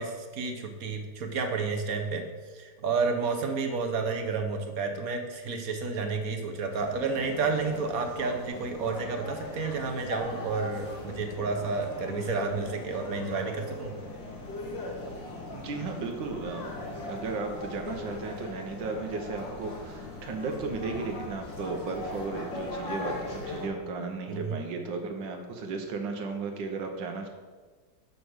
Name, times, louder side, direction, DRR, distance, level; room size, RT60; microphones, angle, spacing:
voice 1, 0.0-2.3 2.5-13.9 24.3-24.6, right 4 dB, 60° right, 4 dB, 1.2 m, -31 dB
sound 1, 6.7-23.7, left 2 dB, 80° left, 2.1 m, -39 dB
voice 2, 15.5-27.3, right 4 dB, 80° right, 4 dB, 1.7 m, -35 dB
6.8 x 5.3 x 6.3 m, 1.4 s
omnidirectional pair, 2.0 m